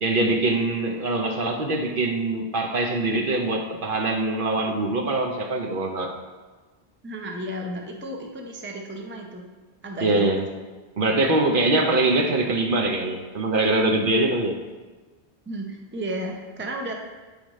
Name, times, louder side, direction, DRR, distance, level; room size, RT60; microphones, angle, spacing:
voice 1, 0.0-6.1 10.0-10.4 11.0-14.6, right 2 dB, 60° right, 2 dB, 0.8 m, -23 dB
voice 2, 7.0-9.5 9.8-10.4 15.5-16.9, right 1 dB, 15° right, 1 dB, 0.5 m, -33 dB
8.6 x 5.0 x 3.1 m, 1.3 s
omnidirectional pair, 1.1 m